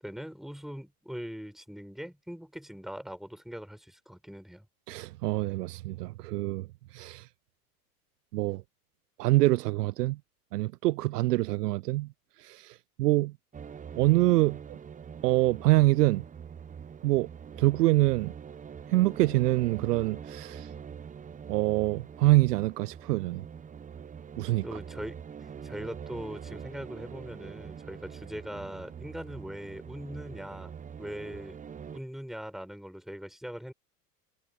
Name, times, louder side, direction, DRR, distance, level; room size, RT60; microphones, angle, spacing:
voice 1, 0.0-4.7 24.6-31.6 31.9-33.7, equal, ahead, 6.0 m, -41 dB
voice 2, 4.9-6.7 6.9-7.3 8.3-8.6 9.2-10.2 10.5-12.1 12.4-13.3 14.0-14.8 15.2-16.2 17.0-17.3 17.6-18.3 18.9-20.7 21.5-23.4 24.4-24.6, right 18 dB, 80° right, 0.6 m, -25 dB
sound 1, 13.5-32.0, right 7 dB, 15° right, 0.7 m, -44 dB
hypercardioid pair, 85°, 47 cm